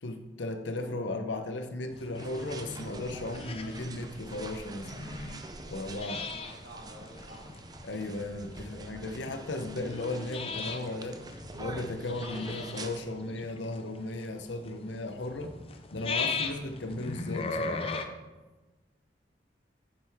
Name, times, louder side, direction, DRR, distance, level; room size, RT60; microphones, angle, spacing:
voice 1, 0.0-5.1 5.7-6.2 7.8-11.2 11.6-15.5 15.9-17.9, left 2 dB, 85° left, 7 dB, 0.8 m, -36 dB
sound 1, 1.9-18.1, left 4 dB, 30° left, 0.6 m, -39 dB
sound 2, 2.1-13.0, right 2 dB, 20° right, 0.5 m, -46 dB
voice 2, 6.0-7.5, right 1 dB, 85° right, -3 dB, 2.7 m, -49 dB
9.1 x 7.7 x 3.5 m, 1.2 s
head